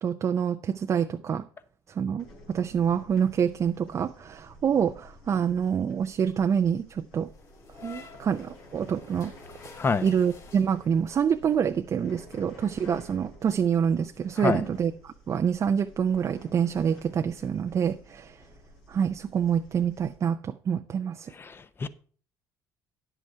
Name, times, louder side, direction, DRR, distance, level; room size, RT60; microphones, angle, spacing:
voice 1, 0.0-1.5 1.9-7.3 7.8-9.3 10.0-18.4 18.9-21.3, right 7 dB, 45° right, 0.6 m, -26 dB
sound 1, 2.2-20.2, left 1 dB, 85° left, 4.1 m, -52 dB
sound 2, 7.2-11.2, left 5 dB, 50° left, 4.9 m, -49 dB
voice 2, 9.8-10.1 14.4-14.6 21.3-21.9, left 4 dB, 30° left, 0.9 m, -27 dB
10.0 x 7.9 x 4.5 m
supercardioid pair, 85°, 8 cm